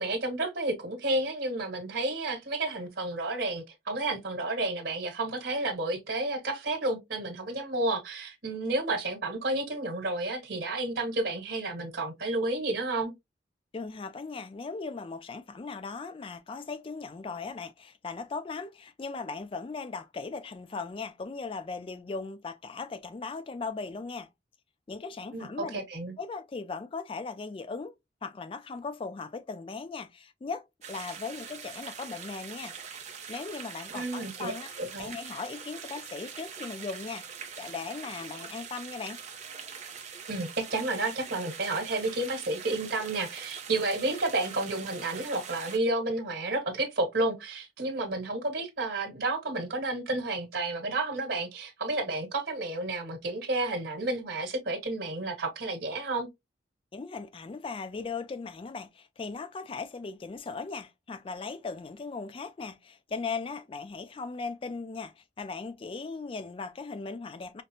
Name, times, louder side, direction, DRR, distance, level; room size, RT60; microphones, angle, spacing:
voice 1, 0.0-13.1 25.3-25.5 25.7-26.1 33.9-34.5 34.8-35.1 40.3-56.3, right 2 dB, 70° right, 1.4 m, -31 dB
voice 2, 13.7-24.3 24.9-25.8 26.2-27.9 28.2-34.7 35.0-37.2 37.6-39.2 56.9-67.6, left 4 dB, 30° left, 0.3 m, -38 dB
sound 1, 30.8-45.8, right 6 dB, 40° right, 0.6 m, -43 dB
5.0 x 2.0 x 2.7 m
head